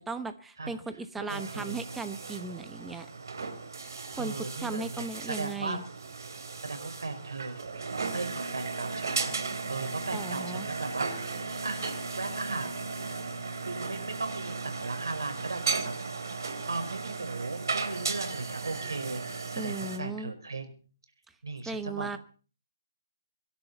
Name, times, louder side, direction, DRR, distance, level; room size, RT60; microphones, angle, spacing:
voice 1, 0.0-3.1 4.1-5.8 10.1-10.7 19.6-20.3 21.7-22.2, right 3 dB, 5° right, 10 dB, 1.0 m, -37 dB
voice 2, 1.2-1.9 4.1-5.8 6.6-7.7 8.1-9.3 9.7-11.3 11.6-11.8 12.2-13.0 13.6-15.9 16.6-20.7 21.4-22.2, right 3 dB, 85° right, 8 dB, 4.7 m, -37 dB
sound 1, 1.3-20.0, right 4 dB, 65° right, 3.5 m, -36 dB
24.5 x 11.5 x 4.1 m, 0.40 s
hypercardioid pair, 160°, 2 cm